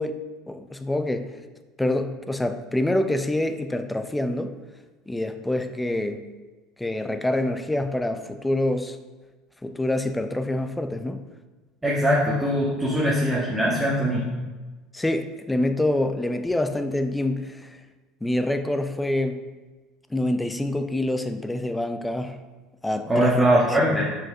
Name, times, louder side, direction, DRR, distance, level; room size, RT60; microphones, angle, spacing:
voice 1, 0.0-1.4 1.8-4.6 5.1-6.2 6.8-9.0 9.6-11.3 14.9-17.8 18.2-19.5 20.1-22.4 22.8-23.9, left 1 dB, 10° left, 8 dB, 0.6 m, -26 dB
voice 2, 11.8-14.2 23.1-24.0, equal, 15° right, -6 dB, 1.5 m, -21 dB
5.9 x 4.9 x 4.9 m, 1.3 s
figure-of-eight pair, 70°, 0 cm